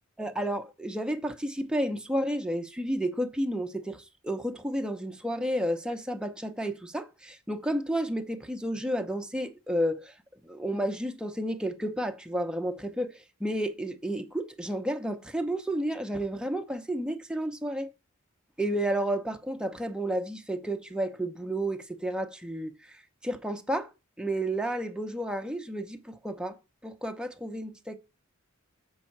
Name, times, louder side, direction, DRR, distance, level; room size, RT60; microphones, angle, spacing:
voice 1, 0.2-10.2 10.4-17.9 18.6-23.9 24.2-28.0, right 1 dB, 5° right, 0.7 m, -31 dB
7.5 x 5.4 x 5.9 m
head